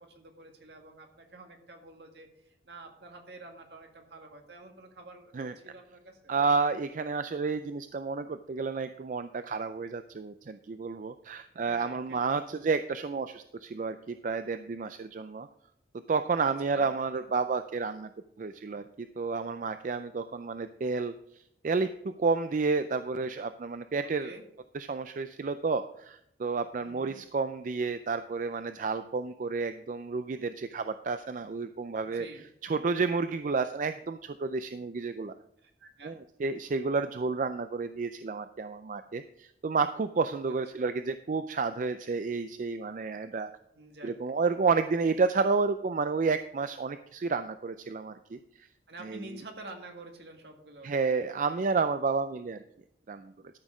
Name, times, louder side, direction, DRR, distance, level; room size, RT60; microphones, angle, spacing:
voice 1, 0.1-6.3 11.6-12.4 16.4-16.9 24.0-24.4 26.8-27.2 32.0-32.5 35.6-36.2 40.7-40.9 43.7-44.1 48.9-51.2, right 2 dB, 70° right, 4 dB, 1.8 m, -48 dB
voice 2, 6.3-15.5 16.1-18.1 18.4-21.1 21.6-24.3 24.7-32.3 32.6-35.3 36.0-43.5 44.0-48.4 49.0-49.3 50.8-52.6 53.1-53.3, right 4 dB, 45° right, 10 dB, 0.4 m, -30 dB
13.0 x 6.3 x 4.8 m, 0.74 s
head